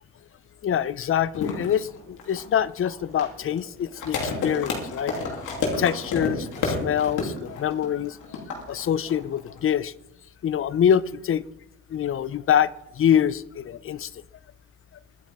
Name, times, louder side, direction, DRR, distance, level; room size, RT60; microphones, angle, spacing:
voice 1, 0.6-5.2 5.8-9.9 10.4-11.4 11.9-14.1, left 9 dB, 45° left, 18 dB, 0.6 m, -25 dB
sound 1, 1.3-9.7, left 4 dB, 85° left, 3.0 m, -30 dB
23.0 x 8.7 x 3.6 m, 0.86 s
cardioid pair, 90°, 30 cm